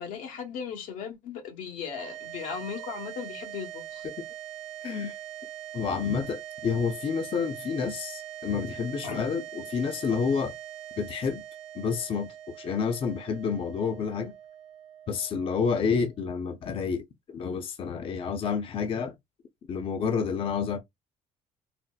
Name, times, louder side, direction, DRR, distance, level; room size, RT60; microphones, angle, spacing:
voice 1, 0.0-4.1 9.0-9.2, left 7 dB, 85° left, 1.1 m, -37 dB
sound 1, 1.9-16.3, right 12 dB, 55° right, 0.5 m, -42 dB
voice 2, 4.8-5.2 5.7-10.5 11.0-11.4 11.7-14.3 15.1-19.1 19.7-20.8, left 6 dB, 45° left, 0.6 m, -29 dB
4.2 x 2.0 x 2.3 m
cardioid pair, 120°, 13 cm